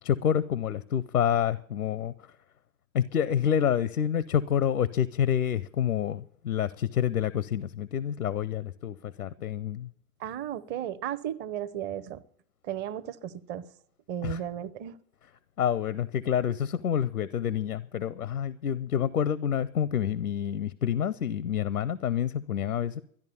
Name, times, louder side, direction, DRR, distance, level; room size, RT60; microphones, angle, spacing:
voice 1, 0.0-2.1 2.9-9.9 14.2-14.4 15.6-23.0, left 9 dB, 90° left, 0.7 m, -28 dB
voice 2, 10.2-12.2 12.6-13.7 14.1-15.0, right 10 dB, 25° right, 0.7 m, -34 dB
13.5 x 10.5 x 6.9 m
hypercardioid pair, 110°, 43 cm